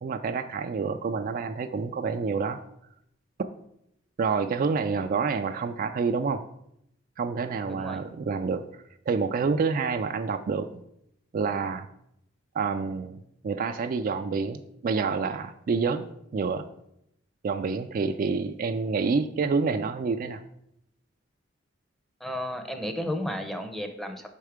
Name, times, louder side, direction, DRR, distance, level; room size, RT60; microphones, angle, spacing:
voice 1, 0.0-2.6 4.2-6.4 7.2-8.6 9.1-10.8 11.3-11.9 12.5-16.6 17.4-20.4, right 5 dB, 45° right, 8 dB, 0.3 m, -28 dB
voice 2, 7.7-8.0 22.2-24.4, left 1 dB, ahead, 5 dB, 0.6 m, -33 dB
5.5 x 4.6 x 4.9 m, 0.76 s
head